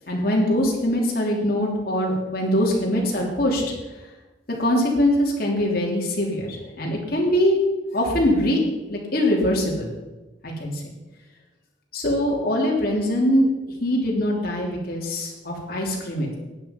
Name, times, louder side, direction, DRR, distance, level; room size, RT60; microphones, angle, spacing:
voice 1, 0.1-3.6 4.6-7.6 7.9-8.6 8.9-9.9 10.4-10.8 11.9-13.5 13.8-16.3, equal, 55° left, -2 dB, 3.1 m, -22 dB
12.0 x 9.7 x 5.3 m, 1.1 s
head